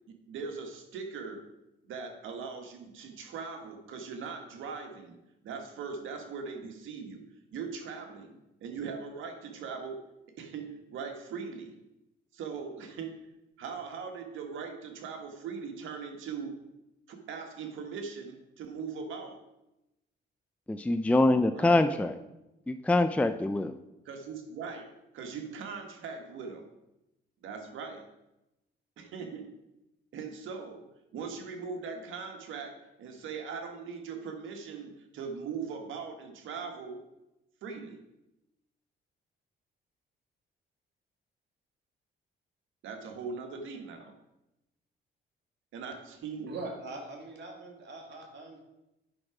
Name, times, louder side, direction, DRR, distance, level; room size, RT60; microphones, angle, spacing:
voice 1, 0.1-1.4 1.9-5.2 5.4-7.2 7.5-10.0 10.4-11.8 12.3-13.1 13.6-16.6 17.1-19.4 21.5-21.9 24.0-24.8 25.1-26.7 27.4-28.1 29.0-29.5 30.1-30.8 31.1-37.0 37.6-38.0 42.8-44.1 45.7-46.5, right 5 dB, 80° right, 4 dB, 1.5 m, -40 dB
voice 2, 20.7-22.2 22.7-23.8, left 2 dB, 5° left, 9 dB, 0.4 m, -25 dB
voice 3, 46.4-48.6, right 2 dB, 60° right, 2 dB, 2.1 m, -42 dB
8.8 x 6.0 x 4.9 m, 0.94 s
cardioid pair, 90°, 20 cm